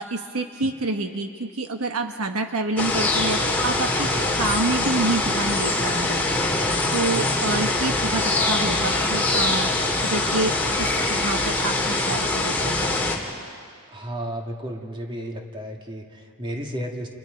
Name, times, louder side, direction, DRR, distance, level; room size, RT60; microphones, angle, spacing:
voice 1, 0.0-4.1 4.4-6.2 6.9-9.7 10.0-12.7, right 2 dB, 75° right, 5 dB, 1.3 m, -27 dB
sound 1, 2.8-13.2, left 2 dB, 10° left, 2.8 m, -23 dB
voice 2, 13.9-17.1, equal, 20° right, 1 dB, 2.3 m, -33 dB
30.0 x 29.0 x 5.2 m, 2.2 s
head